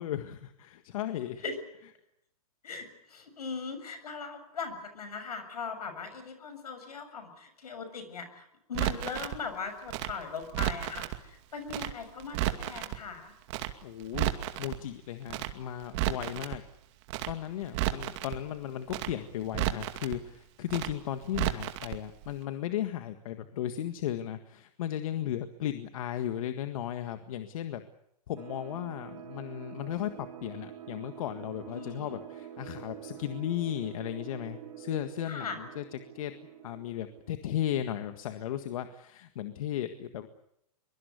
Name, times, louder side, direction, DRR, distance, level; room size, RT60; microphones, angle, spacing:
voice 1, 0.0-1.4 13.8-14.3 14.6-16.6 17.3-27.8 28.3-36.3 36.6-40.3, left 11 dB, 65° left, 8 dB, 1.7 m, -35 dB
voice 2, 2.6-13.3 31.7-32.2 35.2-35.6, left 5 dB, 85° left, 9 dB, 7.1 m, -39 dB
Crackle, 8.7-9.4 9.9-11.2 11.7-11.9 12.2-13.0 13.5-13.7 14.0-14.8 15.3-15.5 15.8-16.6 17.1-17.3 17.6-18.4 18.9-19.1 19.4-20.2 20.7-20.9 21.2-22.0 22.2-22.3, right 15 dB, 50° right, 2.4 m, -32 dB
sound 1, 28.4-37.7, right 10 dB, 70° right, 4.0 m, -46 dB
23.5 x 23.5 x 8.2 m, 0.78 s
hypercardioid pair, 125°, 19 cm